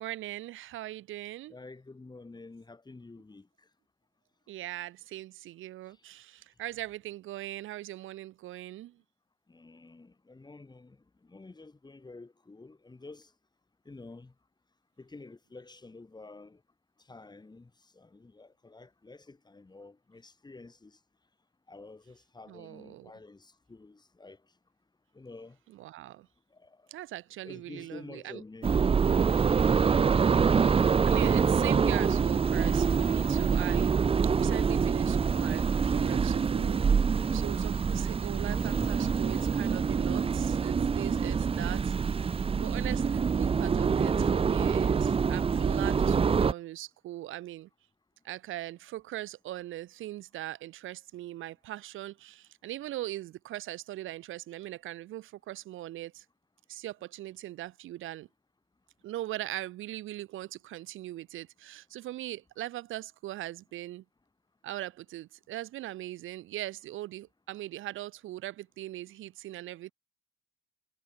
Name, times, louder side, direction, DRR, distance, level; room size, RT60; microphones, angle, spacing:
voice 1, 0.0-1.6 4.5-9.0 22.5-23.1 25.7-26.3 26.9-28.4 30.1-33.9 34.2-36.8 37.3-47.7 48.2-56.2 56.7-58.3 59.0-64.0 64.6-69.9, right 15 dB, 85° right, 1.6 m, -40 dB
voice 2, 1.5-3.7 5.9-6.0 9.5-13.3 13.8-14.3 15.0-16.6 17.0-21.0 21.7-24.4 25.1-25.6 26.5-26.9 27.4-28.8 38.6-38.9, left 3 dB, 20° left, 4.9 m, -49 dB
sound 1, 28.6-46.5, right 6 dB, 30° right, 0.6 m, -26 dB
cardioid pair, 90°, 20 cm